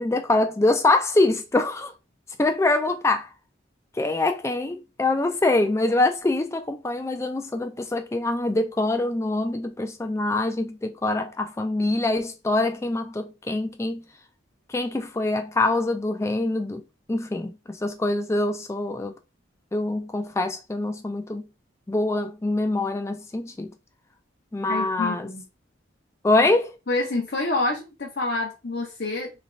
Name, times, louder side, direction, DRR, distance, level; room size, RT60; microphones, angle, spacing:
voice 1, 0.0-1.9 2.4-3.3 4.0-14.0 14.7-16.8 17.1-19.2 19.7-21.4 21.9-23.7 24.5-25.3 26.2-26.7, left 2 dB, 15° left, 0.3 m, -24 dB
voice 2, 24.7-25.4 26.9-29.3, left 2 dB, 55° left, 0.7 m, -27 dB
3.2 x 3.0 x 2.6 m
head